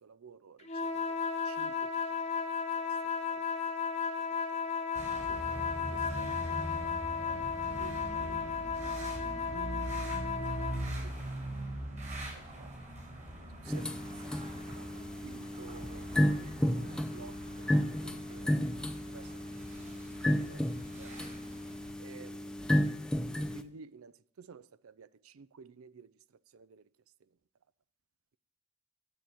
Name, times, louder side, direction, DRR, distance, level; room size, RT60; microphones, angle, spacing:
voice 1, 0.0-2.2 3.1-3.4 4.3-4.4 5.3-5.7 6.2-6.6 7.2-8.3 8.8-9.0 9.6-9.7 10.9-11.6 12.6-12.7 13.6-14.0 14.8-17.7 18.0-18.5 19.1-19.5 20.1-20.7 21.0-21.3 22.0-22.7 23.5-26.1 26.5-26.8, right 5 dB, 80° right, 0.5 m, -53 dB
sound 1, 0.6-10.9, left 6 dB, 30° left, 0.9 m, -34 dB
sound 2, 4.9-21.9, right 1 dB, 35° right, 4.6 m, -42 dB
sound 3, 13.7-23.6, equal, 5° left, 0.6 m, -33 dB
9.8 x 7.6 x 8.8 m
head